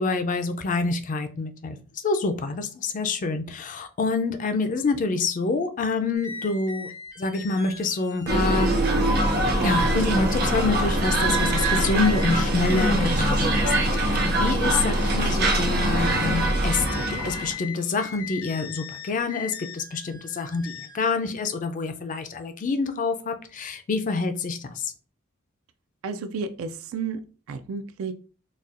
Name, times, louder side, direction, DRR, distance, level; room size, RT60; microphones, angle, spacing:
voice 1, 0.0-6.9 7.2-8.9 9.6-24.9, left 3 dB, 40° left, 8 dB, 0.4 m, -27 dB
sound 1, 6.1-21.1, left 5 dB, 85° left, 1.7 m, -42 dB
sound 2, 8.3-17.5, right 1 dB, 50° right, 0.7 m, -23 dB
voice 2, 26.0-27.2 27.5-28.1, right 5 dB, 70° right, 9 dB, 0.3 m, -31 dB
4.1 x 2.2 x 2.4 m, 0.38 s
head